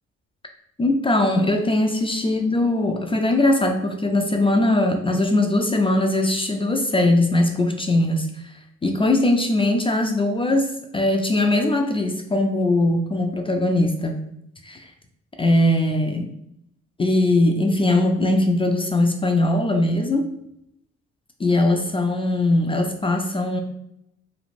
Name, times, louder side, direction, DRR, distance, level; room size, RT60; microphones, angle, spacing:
voice 1, 0.8-8.3 8.8-14.2 14.6-14.9 15.4-16.3 17.0-20.3 21.4-23.6, left 1 dB, 20° left, 4 dB, 0.3 m, -20 dB
3.2 x 2.4 x 2.5 m, 0.77 s
cardioid pair, 90°, 30 cm